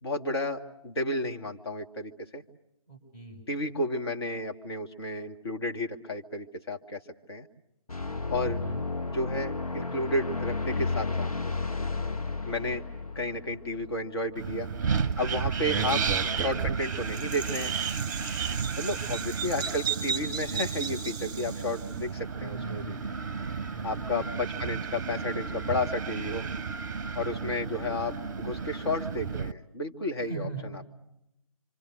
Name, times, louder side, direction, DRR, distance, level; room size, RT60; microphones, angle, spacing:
voice 1, 0.0-2.4 3.5-7.0 7.3-7.5 8.3-8.6 9.1-11.3 12.4-12.8 13.2-14.7 15.2-16.0 16.3-17.7 18.8-23.0 23.8-26.5 27.1-30.5, left 1 dB, 45° left, 3 dB, 1.9 m, -32 dB
voice 2, 2.9-3.4 8.4-8.9 15.6-16.1 18.9-19.2 22.3-23.0 23.6-24.1 27.2-27.6 30.2-30.9, right 3 dB, 20° left, 2 dB, 6.3 m, -42 dB
sound 1, 7.9-14.6, left 3 dB, 75° left, 1.1 m, -33 dB
Wind, 14.4-29.5, right 6 dB, 30° right, 0.9 m, -33 dB
Bird vocalization bird call bird song, 15.6-21.9, right 7 dB, 15° right, 1.9 m, -35 dB
27.0 x 26.5 x 6.6 m, 0.86 s
figure-of-eight pair, 150°, 19 cm